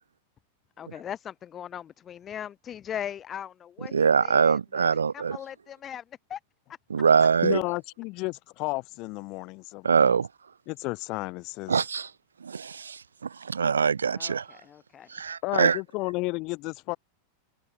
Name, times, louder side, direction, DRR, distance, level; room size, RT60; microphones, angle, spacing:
voice 1, 0.8-4.9 5.1-6.0 6.3-6.4 14.1-15.1, left 9 dB, 25° left, 7.8 m, -39 dB
voice 2, 3.9-5.4 6.9-7.6 9.8-10.3 11.7-12.1 12.4-14.4 15.1-15.8, right 6 dB, 70° right, 1.3 m, -23 dB
voice 3, 7.4-10.2 10.7-11.8 15.4-17.0, left 24 dB, 40° left, 3.4 m, -32 dB
open air
figure-of-eight pair, 90°, 0 cm